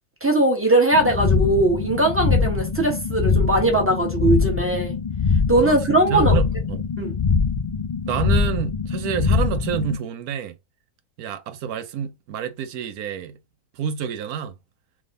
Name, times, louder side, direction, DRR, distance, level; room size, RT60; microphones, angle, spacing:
voice 1, 0.2-4.9 5.5-6.4 7.0-7.1, right 2 dB, 10° right, 1.2 m, -20 dB
sound 1, 0.9-10.0, left 5 dB, 70° left, 0.3 m, -23 dB
voice 2, 5.6-6.8 8.1-10.6 11.2-13.4 13.7-14.5, right 8 dB, 85° right, 1.2 m, -28 dB
3.6 x 3.5 x 3.7 m
omnidirectional pair, 1.5 m